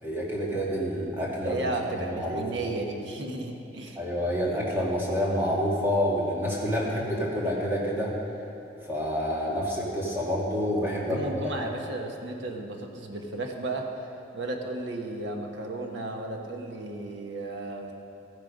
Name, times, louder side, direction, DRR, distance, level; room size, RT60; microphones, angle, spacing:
voice 1, 0.0-1.6 2.0-2.4 4.0-8.1 8.9-11.2, equal, 10° right, -5 dB, 2.1 m, -28 dB
voice 2, 1.3-4.0 11.0-13.9 14.3-17.9, right 2 dB, 85° right, 2 dB, 1.4 m, -34 dB
14.0 x 9.8 x 5.3 m, 2.8 s
head